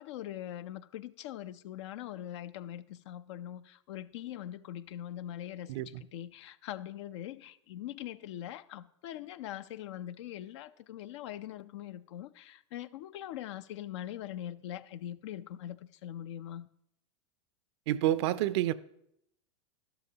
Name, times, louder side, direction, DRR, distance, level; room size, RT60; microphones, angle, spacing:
voice 1, 0.0-16.7, left 12 dB, 65° left, 0.5 m, -42 dB
voice 2, 5.7-6.0 17.9-18.7, right 13 dB, 60° right, 0.5 m, -29 dB
12.5 x 12.0 x 2.8 m
hypercardioid pair, 100°, 16 cm